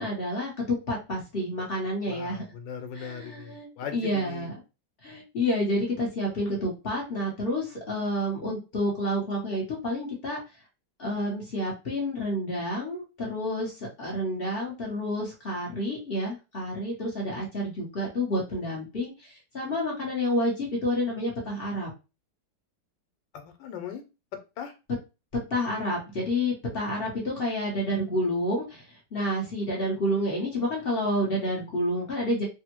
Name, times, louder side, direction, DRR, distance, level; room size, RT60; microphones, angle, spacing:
voice 1, 0.0-2.4 2.9-4.5 5.0-10.4 11.0-21.9 25.5-32.4, left 1 dB, 45° left, -3 dB, 0.8 m, -29 dB
voice 2, 2.1-4.5 23.3-24.0 24.6-24.7, left 6 dB, 90° left, 7 dB, 1.3 m, -39 dB
3.4 x 2.0 x 2.9 m, 0.29 s
omnidirectional pair, 1.9 m